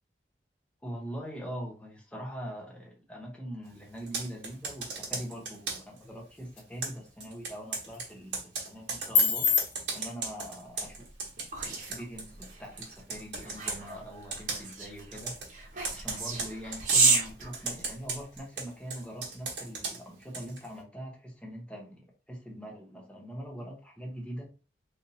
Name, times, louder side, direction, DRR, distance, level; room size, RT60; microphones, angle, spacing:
voice 1, 0.8-9.5 9.9-11.0 11.6-15.3 15.9-22.0 22.3-24.4, equal, 5° left, 0.9 m, -42 dB
Computer keyboard, 4.0-6.0 6.8-12.5 12.8-13.8 14.3-14.8 15.1-15.5 15.8-17.1 17.5-20.7, right 4 dB, 80° right, 1.1 m, -37 dB
sound 1, 5.7-19.7, left 5 dB, 75° left, 1.3 m, -37 dB
sound 2, 10.9-18.4, right 3 dB, 45° right, 1.1 m, -31 dB
3.4 x 2.7 x 2.8 m
head